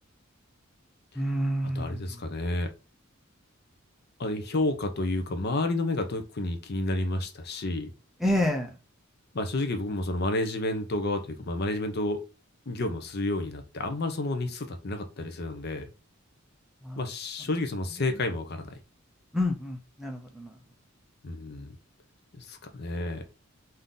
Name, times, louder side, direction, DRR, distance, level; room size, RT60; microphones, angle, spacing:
voice 1, 1.2-2.0 8.2-8.7 16.8-17.0 19.3-20.5, left 1 dB, ahead, 2 dB, 0.5 m, -28 dB
voice 2, 1.7-2.7 4.2-7.9 9.3-12.2 12.7-15.9 17.0-18.7 21.2-21.7 22.4-23.2, left 2 dB, 50° left, 7 dB, 0.7 m, -30 dB
3.7 x 2.7 x 3.8 m, 0.30 s
head